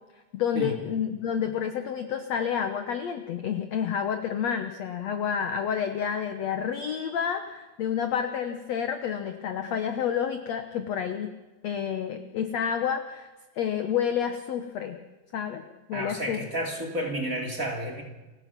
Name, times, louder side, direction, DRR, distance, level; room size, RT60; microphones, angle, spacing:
voice 1, 0.3-11.3 11.6-13.3 13.6-15.0 15.3-16.4, left 8 dB, 70° left, 8 dB, 1.7 m, -29 dB
voice 2, 15.9-18.0, equal, 25° right, 3 dB, 2.7 m, -31 dB
29.5 x 16.5 x 6.0 m, 1.2 s
omnidirectional pair, 4.5 m